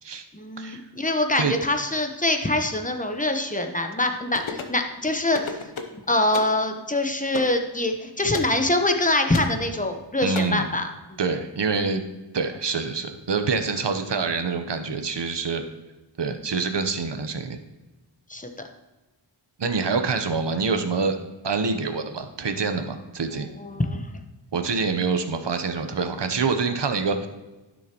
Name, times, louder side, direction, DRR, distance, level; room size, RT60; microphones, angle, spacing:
voice 1, 0.3-5.6 5.9-11.2 18.3-18.5 23.6-24.1, left 1 dB, 15° left, 5 dB, 0.9 m, -24 dB
sound 1, 4.3-4.8 5.3-6.0 6.3-6.6 7.3-7.6 8.3-8.6 9.3-9.6 10.3-10.4, left 5 dB, 85° left, 0.9 m, -33 dB
voice 2, 10.2-10.7 11.2-12.0 12.3-15.6 16.2-17.6 19.6-21.2 21.4-23.5 24.5-27.3, right 4 dB, 60° right, 7 dB, 1.0 m, -26 dB
11.0 x 6.4 x 3.0 m, 1.1 s
wide cardioid pair, 60°, 48 cm